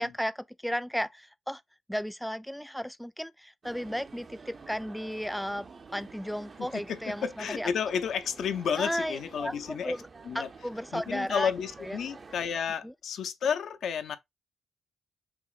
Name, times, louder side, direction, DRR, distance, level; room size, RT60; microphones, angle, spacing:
voice 1, 0.0-1.6 1.9-7.7 8.7-10.1 10.3-11.5 11.8-12.0 12.8-12.9, equal, ahead, 0.4 m, -34 dB
sound 1, 3.6-12.5, right 4 dB, 50° right, 0.5 m, -50 dB
voice 2, 6.7-9.9 10.3-10.5 10.9-14.2, left 7 dB, 75° left, 0.4 m, -31 dB
5.8 x 2.0 x 2.4 m
supercardioid pair, 45°, 0 cm